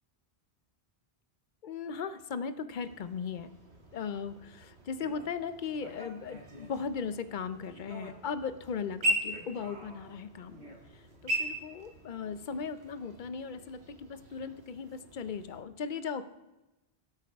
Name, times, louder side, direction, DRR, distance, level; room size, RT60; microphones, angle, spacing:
voice 1, 1.6-3.5 3.9-10.8 11.2-16.3, left 6 dB, 55° left, 12 dB, 0.7 m, -37 dB
sound 1, 2.8-15.6, equal, 85° right, 1.9 m, -40 dB
17.5 x 7.9 x 3.5 m, 1.0 s
omnidirectional pair, 1.1 m